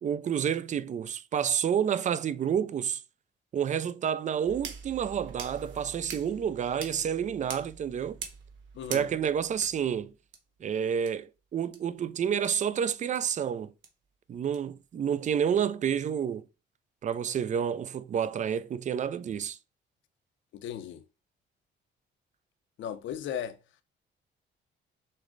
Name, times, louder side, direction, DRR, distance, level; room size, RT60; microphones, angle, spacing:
voice 1, 0.0-3.0 3.5-8.2 8.9-10.1 10.6-13.7 14.3-16.4 17.0-19.6, right 8 dB, 40° right, 0.4 m, -29 dB
sound 1, 4.4-10.4 11.1-11.2 11.7-11.8 12.4-12.5 13.1-13.2 13.8-13.9 14.5-14.6 15.2-15.3, right 6 dB, 70° right, 1.1 m, -44 dB
voice 2, 8.7-9.1 20.5-21.0 22.8-23.6, left 9 dB, 70° left, 0.6 m, -36 dB
6.3 x 2.1 x 3.8 m
cardioid pair, 90°, 20 cm